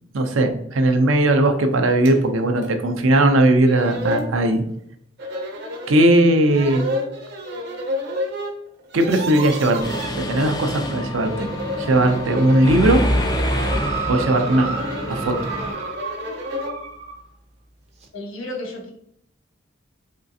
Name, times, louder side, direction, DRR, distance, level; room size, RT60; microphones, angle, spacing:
voice 1, 0.1-4.6 5.9-6.8 8.9-11.5 11.9-13.1 14.1-14.7 15.1-15.3, right 1 dB, 80° right, 6 dB, 0.5 m, -18 dB
sound 1, 2.0-2.2 2.6-2.7 3.4-3.5 3.7-4.3 5.2-5.9 6.4-8.5 8.8-10.1 11.1-16.8, left 1 dB, 55° right, 0.9 m, -30 dB
Mechanisms, 9.8-15.7, equal, 20° left, 0.4 m, -26 dB
sound 2, 13.6-17.2 18.0-18.1, right 5 dB, 35° right, 0.5 m, -32 dB
voice 2, 18.1-18.9, left 1 dB, 85° left, 0 dB, 1.1 m, -32 dB
3.7 x 3.2 x 2.6 m, 0.72 s
head